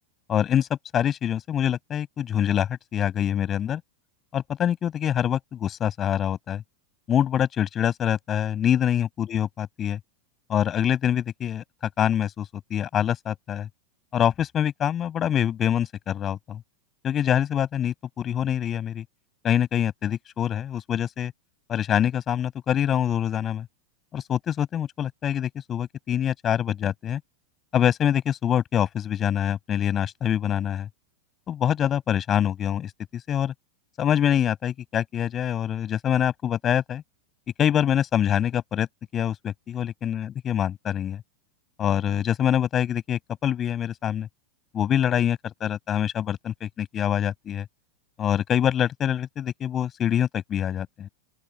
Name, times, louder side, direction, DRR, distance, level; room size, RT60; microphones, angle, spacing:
voice 1, 0.3-3.8 4.3-6.6 7.1-10.0 10.5-11.6 12.0-13.7 14.1-16.6 17.0-19.0 19.4-21.3 21.7-23.7 24.1-27.2 27.7-30.9 31.5-33.5 34.0-37.0 37.6-38.9 39.1-41.2 41.8-44.3 44.7-47.7 48.2-51.1, left 9 dB, 25° left, 7.5 m, -25 dB
open air
figure-of-eight pair, 90°, 0 cm